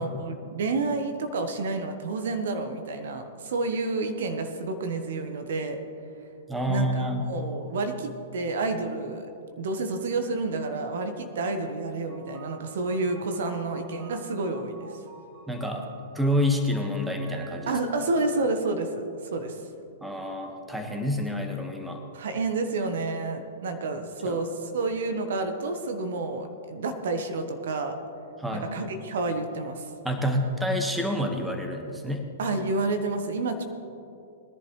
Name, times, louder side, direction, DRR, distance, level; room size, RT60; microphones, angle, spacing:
voice 1, 0.0-5.8 6.7-9.3 9.6-14.9 17.7-19.6 22.1-27.9 28.5-29.9 32.4-33.6, right 3 dB, 65° right, 7 dB, 1.2 m, -29 dB
voice 2, 6.5-7.3 15.5-15.8 16.1-17.7 20.0-22.0 24.2-24.4 28.4-28.7 30.0-32.2, equal, 5° right, 3 dB, 1.5 m, -28 dB
sound 1, 12.1-18.6, right 5 dB, 40° right, 1.7 m, -50 dB
20.0 x 11.0 x 3.2 m, 2.7 s
figure-of-eight pair, 110°, 0 cm